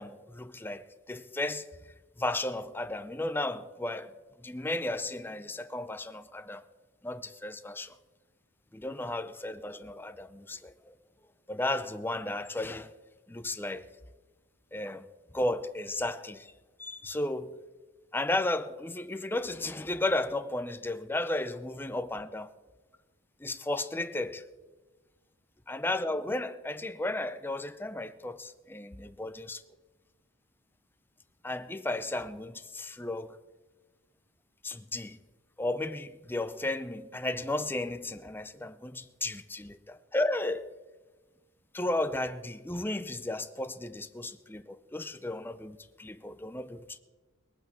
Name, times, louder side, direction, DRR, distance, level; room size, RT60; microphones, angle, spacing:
voice 1, 0.0-1.7 2.2-4.1 4.4-6.6 7.0-7.9 8.7-10.9 11.5-12.9 13.3-13.9 14.7-15.1 15.3-16.5 16.8-17.6 18.1-22.5 23.4-24.4 25.7-29.6 31.4-33.4 34.6-35.2 35.6-40.7 41.7-47.0, left 2 dB, 10° left, 0.5 m, -34 dB
19.5 x 9.0 x 7.4 m
head